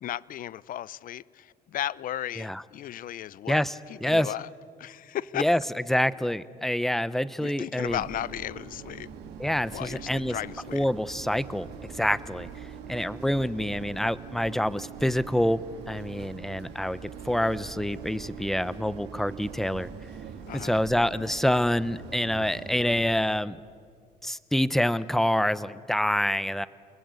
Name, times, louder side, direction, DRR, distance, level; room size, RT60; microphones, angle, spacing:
voice 1, 0.0-3.6 3.9-4.5 4.8-5.5 7.4-9.1 9.7-10.9 13.0-13.1 20.5-20.8, left 12 dB, 55° left, 21 dB, 0.6 m, -35 dB
voice 2, 3.5-4.3 5.4-5.6 5.9-8.0 9.4-10.4 10.7-11.7 11.9-12.5 12.9-19.9 20.6-23.6 24.2-26.7, left 1 dB, ahead, 17 dB, 0.7 m, -26 dB
sound 1, 7.9-23.1, right 7 dB, 85° right, 2.8 m, -43 dB
29.5 x 21.0 x 8.3 m, 2.2 s
cardioid pair, 110°, 17 cm